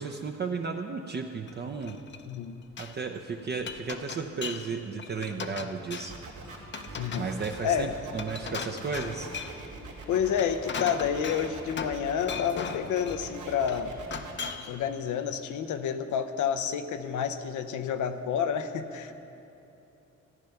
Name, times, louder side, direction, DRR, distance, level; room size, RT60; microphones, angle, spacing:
voice 1, 0.0-2.0 2.8-6.1 7.2-9.3, right 5 dB, 35° right, 3 dB, 0.7 m, -34 dB
Glass, 1.5-2.4 2.6-3.0 3.4-4.7 5.0-6.3 6.7-9.7 10.2-12.0 12.3-13.2 13.7-14.8, left 5 dB, 40° left, 0.7 m, -38 dB
sound 1, 6.1-14.3, right 3 dB, 80° right, 2.5 m, -43 dB
voice 2, 7.0-7.3 7.6-7.9 10.1-13.9 14.7-19.1, left 8 dB, 75° left, 9 dB, 0.8 m, -29 dB
13.5 x 9.1 x 5.8 m, 3.0 s
cardioid pair, 90°, 30 cm